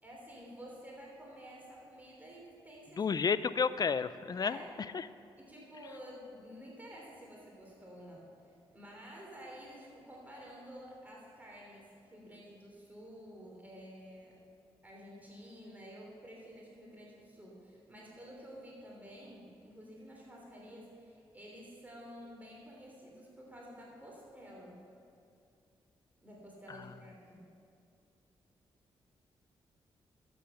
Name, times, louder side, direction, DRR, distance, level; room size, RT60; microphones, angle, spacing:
voice 1, 0.0-3.1 4.4-4.7 5.4-14.4 14.8-24.8 26.2-27.4, equal, 15° right, -3 dB, 3.1 m, -51 dB
voice 2, 3.0-4.6 4.9-5.0, left 5 dB, 40° left, 15 dB, 0.4 m, -31 dB
12.0 x 7.9 x 5.5 m, 2.5 s
cardioid pair, 65°, 10 cm